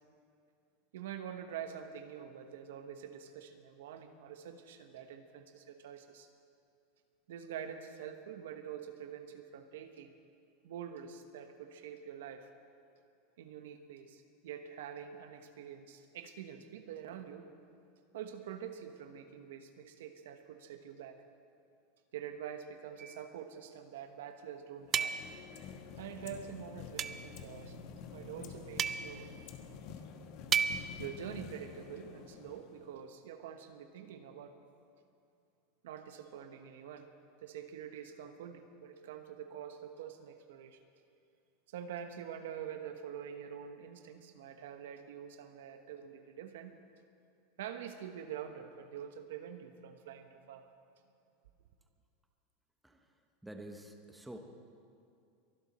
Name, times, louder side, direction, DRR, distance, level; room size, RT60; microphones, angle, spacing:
voice 1, 0.9-6.3 7.3-10.1 10.6-12.5 13.4-17.5 18.1-21.2 22.1-25.2 26.0-27.8 28.1-29.3 31.0-34.6 35.8-37.1 37.4-40.8 41.7-46.8 47.6-50.7, right 8 dB, 85° right, 7 dB, 1.2 m, -46 dB
sound 1, 23.0-23.2 24.9-25.5 27.0-27.3 28.8-29.3 30.5-31.0, right 7 dB, 25° right, 0.4 m, -33 dB
sound 2, 24.8-33.1, left 6 dB, 45° left, 1.2 m, -49 dB
voice 2, 53.4-54.4, right 1 dB, 5° right, 3 dB, 1.0 m, -48 dB
23.0 x 11.5 x 4.3 m, 2.6 s
supercardioid pair, 160°, 0 cm